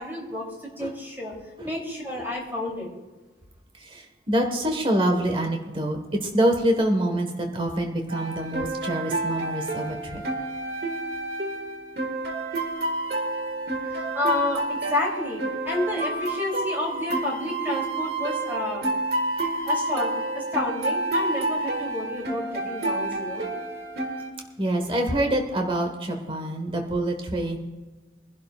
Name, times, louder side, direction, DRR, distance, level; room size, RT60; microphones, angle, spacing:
voice 1, 0.0-1.3 1.6-2.9 13.9-18.8 19.6-23.5, left 2 dB, 10° right, -2 dB, 3.1 m, -30 dB
voice 2, 3.8-10.2 24.6-27.6, right 1 dB, 30° right, 4 dB, 1.4 m, -26 dB
sound 1, 8.1-24.3, right 2 dB, 60° right, 1.9 m, -29 dB
23.0 x 11.5 x 2.4 m, 1.2 s
head